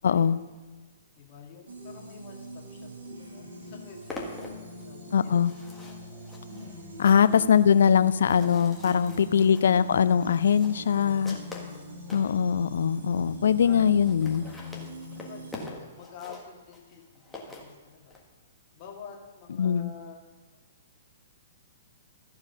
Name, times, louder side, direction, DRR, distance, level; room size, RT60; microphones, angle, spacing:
voice 1, 0.0-0.4 5.1-5.5 7.0-11.4 12.1-14.5 19.6-19.9, left 7 dB, 70° left, 14 dB, 0.4 m, -22 dB
voice 2, 1.1-5.6 7.1-7.3 8.9-9.7 10.7-11.2 11.8-12.5 13.6-13.9 15.3-18.2 18.7-20.6, left 6 dB, 45° left, -1 dB, 2.0 m, -49 dB
sound 1, 1.7-15.7, left 1 dB, 75° right, 2.0 m, -43 dB
sound 2, 3.5-12.3 12.9-13.0 13.2-13.3 13.5-13.6 13.9-18.2, left 2 dB, 5° left, 1.6 m, -45 dB
14.0 x 4.8 x 5.3 m, 1.3 s
hypercardioid pair, 120°, 0 cm